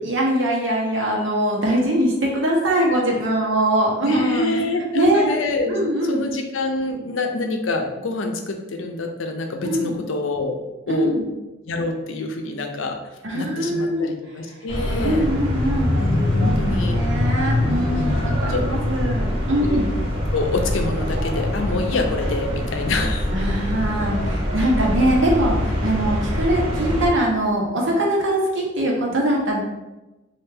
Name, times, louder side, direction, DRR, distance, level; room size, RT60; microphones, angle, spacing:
voice 1, 0.0-4.6 4.9-5.3 5.7-6.3 9.6-10.0 10.9-11.3 13.2-14.5 15.0-15.9 16.3-19.9 23.3-29.6, right 1 dB, 80° right, -2 dB, 0.9 m, -22 dB
voice 2, 4.0-10.6 10.9-11.1 11.7-13.0 13.3-15.3 16.0-17.0 17.7-18.1 18.5-18.8 19.6-19.8 20.3-23.3 26.0-26.1, left 3 dB, 90° left, 4 dB, 0.5 m, -26 dB
sound 1, 14.7-27.1, left 1 dB, 25° right, 1.0 m, -23 dB
3.3 x 2.4 x 3.3 m, 1.1 s
head